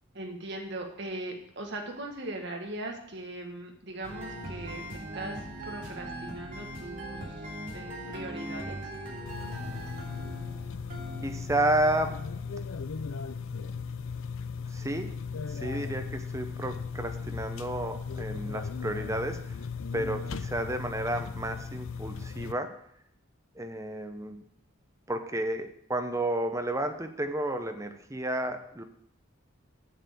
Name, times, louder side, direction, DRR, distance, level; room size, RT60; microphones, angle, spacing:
voice 1, 0.1-8.8, right 2 dB, 55° right, 2 dB, 1.7 m, -40 dB
sound 1, 4.0-13.2, right 1 dB, 40° right, 3.0 m, -41 dB
sound 2, 9.3-22.5, left 5 dB, 75° left, 0.5 m, -37 dB
voice 2, 11.2-12.1 14.7-15.1 15.5-19.6 19.9-22.7 23.5-24.4 25.1-28.8, right 1 dB, 15° right, 7 dB, 0.8 m, -31 dB
7.4 x 7.3 x 6.8 m, 0.69 s
head